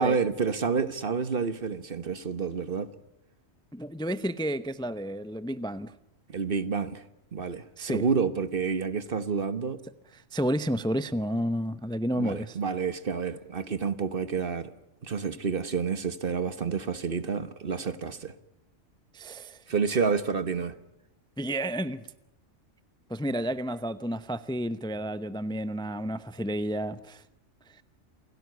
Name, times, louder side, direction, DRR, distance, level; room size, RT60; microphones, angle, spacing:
voice 1, 0.0-2.9 6.3-7.0 7.3-9.8 12.2-14.7 15.0-18.3 19.7-20.8, right 5 dB, 50° right, 1.4 m, -29 dB
voice 2, 3.7-5.9 7.8-8.0 10.3-12.6 19.1-19.6 21.4-22.1 23.1-27.2, equal, 5° left, 0.7 m, -31 dB
28.0 x 18.0 x 9.5 m
omnidirectional pair, 1.2 m